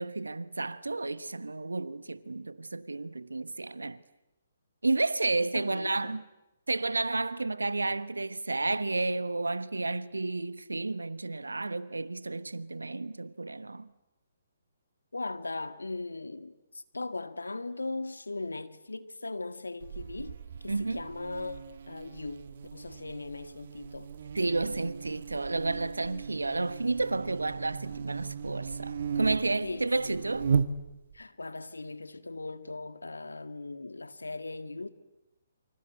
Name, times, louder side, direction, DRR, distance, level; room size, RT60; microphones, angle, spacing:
voice 1, 0.0-4.0 4.8-6.2 6.7-13.9 20.7-21.1 24.3-30.5, right 3 dB, 85° right, 1.2 m, -31 dB
voice 2, 5.5-6.2 15.1-21.6 21.9-24.1 29.6-30.2 31.1-34.9, left 3 dB, 85° left, 1.9 m, -39 dB
Buzz, 19.8-31.2, right 6 dB, 55° right, 1.6 m, -36 dB
29.5 x 25.0 x 8.0 m
figure-of-eight pair, 135°, 0 cm